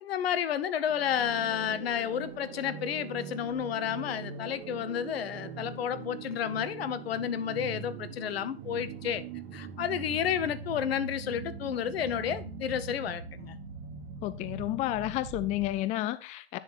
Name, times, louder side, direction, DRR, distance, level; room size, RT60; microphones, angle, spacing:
voice 1, 0.0-9.2 9.5-13.6, left 9 dB, 70° left, 0.8 m, -31 dB
sound 1, 0.9-15.9, right 6 dB, 50° right, 1.5 m, -42 dB
voice 2, 14.2-16.6, left 15 dB, 25° left, 0.4 m, -31 dB
10.0 x 4.0 x 4.1 m
hypercardioid pair, 100°, 31 cm